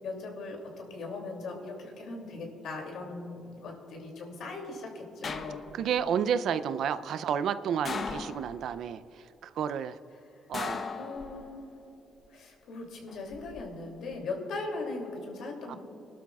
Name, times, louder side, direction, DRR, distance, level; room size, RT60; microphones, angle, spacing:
voice 1, 0.0-5.6 10.9-11.7 12.3-15.8, left 3 dB, 75° left, 1 dB, 2.8 m, -39 dB
sound 1, 5.2-6.0 7.9-8.8 10.5-11.7 13.1-13.6, left 4 dB, 45° left, 0.8 m, -37 dB
voice 2, 5.7-10.0 10.5-10.8 15.7-15.8, right 8 dB, 70° right, 13 dB, 0.5 m, -31 dB
23.5 x 12.0 x 2.4 m, 3.0 s
cardioid pair, 90°, 0 cm